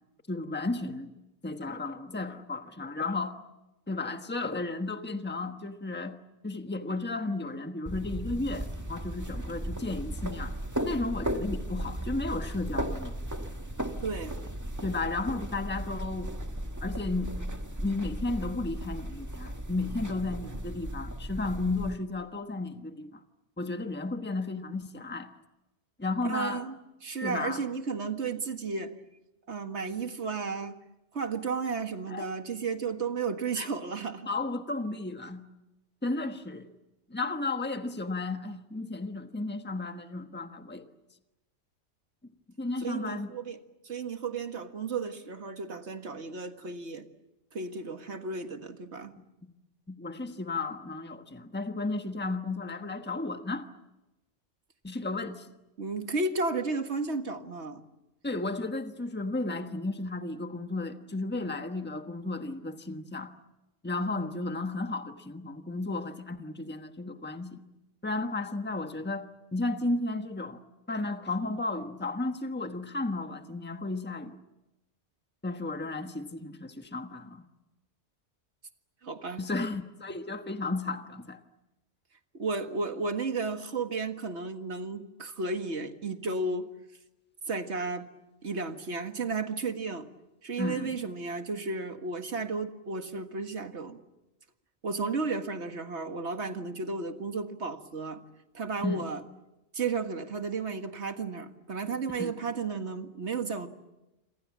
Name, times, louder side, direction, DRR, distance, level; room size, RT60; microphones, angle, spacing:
voice 1, 0.3-1.1 1.4-3.4 3.9-6.2 6.4-10.6 10.8-13.2 14.8-16.3 16.8-17.3 17.8-23.2 23.6-25.3 26.0-26.6 27.2-27.6 32.1-32.3 33.6-33.7 34.3-35.4 36.0-36.7 37.1-40.9 42.6-43.3 49.4-49.5 49.9-53.7 54.8-55.5 58.2-63.3 63.8-67.6 68.0-74.4 75.4-77.5 79.4-81.4 90.6-90.9 98.8-99.1 102.1-102.3, left 2 dB, 10° left, 1.3 m, -33 dB
sound 1, 7.9-21.9, right 1 dB, 15° right, 1.8 m, -36 dB
voice 2, 14.0-14.4 26.2-28.9 29.5-30.8 31.1-34.3 42.8-43.6 43.8-47.1 47.5-49.1 55.8-57.8 79.0-79.4 82.3-86.7 87.5-88.1 88.4-90.1 90.4-94.0 94.8-98.2 98.5-99.2 99.7-103.7, right 4 dB, 75° right, 2.0 m, -33 dB
28.0 x 26.5 x 7.4 m
omnidirectional pair, 1.2 m